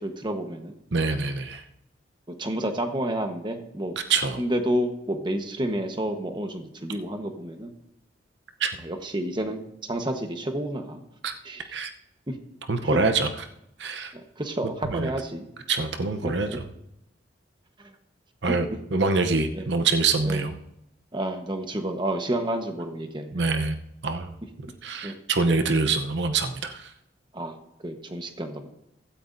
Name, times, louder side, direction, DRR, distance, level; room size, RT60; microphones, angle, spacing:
voice 1, 0.0-0.7 2.3-4.0 4.4-7.7 8.8-11.0 11.4-11.8 12.3-12.4 12.8-13.0 14.1-15.5 16.2-16.6 19.5-19.7 20.2-20.5 21.1-23.5 25.0-25.1 27.3-27.6 27.8-28.7, right 1 dB, 25° right, 5 dB, 1.1 m, -30 dB
voice 2, 0.9-1.6 4.1-4.4 8.6-8.7 11.2-11.3 11.7-11.9 12.7-13.3 13.8-14.1 14.9-15.1 15.7-16.6 18.4-20.5 23.3-23.8 24.0-24.3 24.8-26.9, right 4 dB, 70° right, 7 dB, 0.8 m, -25 dB
15.5 x 13.0 x 2.6 m, 0.81 s
head